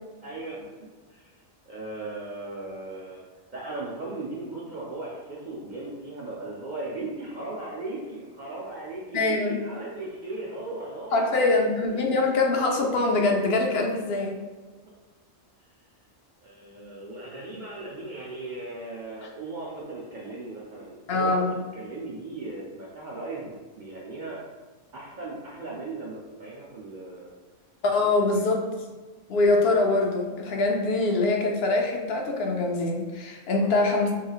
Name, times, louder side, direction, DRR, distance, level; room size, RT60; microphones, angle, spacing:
voice 1, 0.2-1.4 1.7-3.2 3.5-12.1 14.0-14.1 16.4-24.4 24.9-27.3 28.3-28.5 33.5-34.0, right 2 dB, 55° right, -5 dB, 0.6 m, -37 dB
voice 2, 9.1-9.6 11.1-14.4 21.1-21.6 27.8-28.7 29.3-34.1, left 2 dB, 65° left, 2 dB, 0.8 m, -23 dB
3.8 x 3.1 x 2.3 m, 1.3 s
omnidirectional pair, 1.2 m